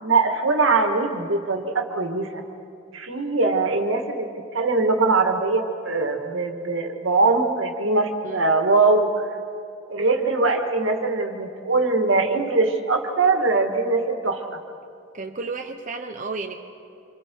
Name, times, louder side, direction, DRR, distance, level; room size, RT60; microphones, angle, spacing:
voice 1, 0.0-2.4 2.9-4.3 4.5-9.3 9.9-14.6, right 3 dB, 80° right, 4 dB, 2.0 m, -22 dB
voice 2, 15.1-16.6, right 3 dB, 40° right, 3 dB, 1.0 m, -32 dB
27.5 x 27.0 x 4.7 m, 2.6 s
head